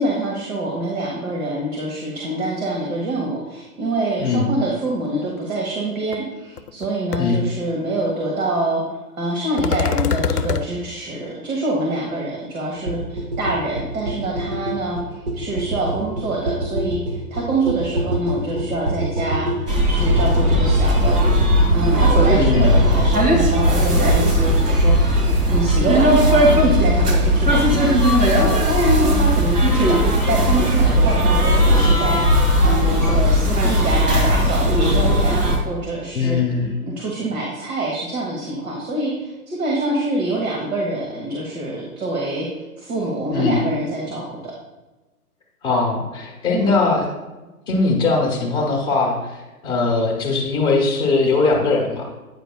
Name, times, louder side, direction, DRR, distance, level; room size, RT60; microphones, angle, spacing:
voice 1, 0.0-8.8 9.2-21.2 21.7-36.4 36.8-44.5 46.5-46.7, right 2 dB, 65° right, -2 dB, 1.5 m, -25 dB
voice 2, 4.2-4.5 7.2-7.4 22.3-22.8 36.1-36.8 43.3-43.6 45.6-47.1 47.7-52.1, left 3 dB, 10° left, -1 dB, 1.0 m, -20 dB
sound 1, 6.1-6.2 6.6-6.9 7.1-7.2 9.6-10.7, left 7 dB, 90° left, 0.5 m, -22 dB
sound 2, 12.9-25.3, right 1 dB, 45° right, 1.1 m, -25 dB
sound 3, 19.7-35.6, equal, 80° right, 2.1 m, -17 dB
8.9 x 5.1 x 2.3 m, 1.1 s
figure-of-eight pair, 130°, 45 cm